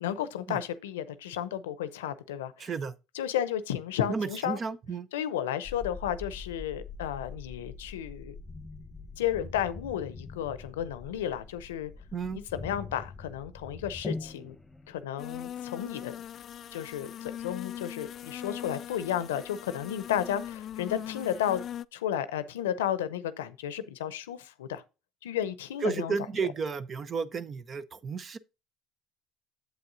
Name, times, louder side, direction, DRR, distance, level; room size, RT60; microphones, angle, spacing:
voice 1, 0.0-2.7 3.1-4.6 5.1-8.3 9.2-11.9 12.5-14.6 14.9-16.1 16.7-21.6 21.9-24.8 25.2-26.1, left 10 dB, 90° left, 0.6 m, -33 dB
voice 2, 2.6-2.9 4.1-5.1 12.1-12.4 25.8-28.4, right 5 dB, 40° right, 0.8 m, -32 dB
sound 1, 5.6-15.0, left 3 dB, 15° left, 1.0 m, -43 dB
sound 2, 15.2-21.8, left 10 dB, 55° left, 0.3 m, -40 dB
8.0 x 7.8 x 2.7 m
hypercardioid pair, 65°, 0 cm